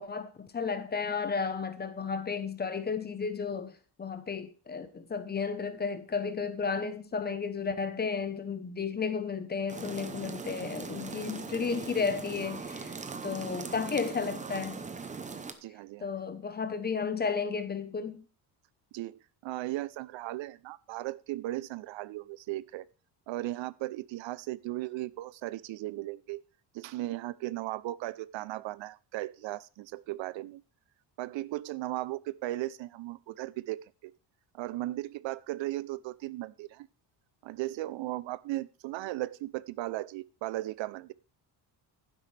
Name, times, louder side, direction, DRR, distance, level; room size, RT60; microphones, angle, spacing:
voice 1, 0.0-3.7 4.0-13.0 13.2-14.8 16.0-18.2, left 5 dB, 20° left, 0.9 m, -33 dB
sound 1, 9.7-15.5, right 4 dB, 15° right, 0.8 m, -40 dB
voice 2, 15.6-16.1 18.9-22.9 23.3-26.4 26.7-30.6 31.2-34.1 34.5-36.9 37.4-41.1, right 17 dB, 75° right, 0.7 m, -36 dB
11.5 x 10.0 x 3.3 m
cardioid pair, 175°, 45 cm